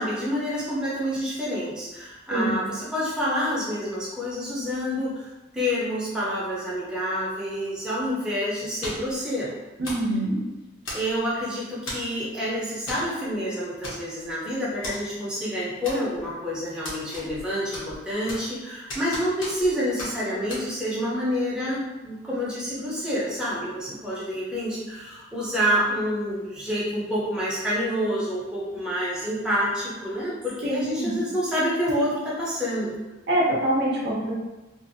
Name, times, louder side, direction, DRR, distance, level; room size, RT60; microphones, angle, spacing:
voice 1, 0.0-5.3 5.5-9.5 10.9-32.9, equal, 5° right, -8 dB, 0.6 m, -28 dB
sound 1, 8.8-9.2 9.8-10.1 10.9-11.3 11.9-12.1 12.9-13.1 13.3-13.4 13.8-14.3 14.8-15.0 15.8-16.3 16.8-17.5 17.7-18.6 18.9-19.7 20.0-20.1 20.5-20.6, left 1 dB, 85° left, 1.0 m, -35 dB
voice 2, 9.8-10.4 30.6-31.2 33.3-34.3, right 1 dB, 60° right, -4 dB, 0.6 m, -24 dB
2.6 x 2.5 x 2.6 m, 1.1 s
head